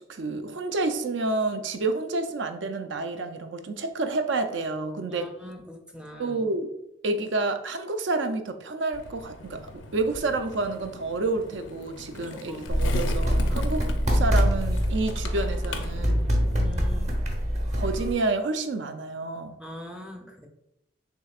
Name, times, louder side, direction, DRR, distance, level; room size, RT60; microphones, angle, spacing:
voice 1, 0.1-5.3 6.2-6.7 7.0-9.6 9.9-13.8 14.1-16.3 17.7-19.6, right 3 dB, 70° right, 7 dB, 0.5 m, -29 dB
voice 2, 5.1-6.4 12.3-12.8 16.5-17.1 19.6-20.5, equal, 5° right, 3 dB, 0.5 m, -42 dB
Skateboard, 8.9-16.9, left 3 dB, 75° left, 0.5 m, -40 dB
sound 1, 12.7-18.1, equal, 35° right, 0.8 m, -25 dB
6.6 x 2.8 x 2.4 m, 0.88 s
head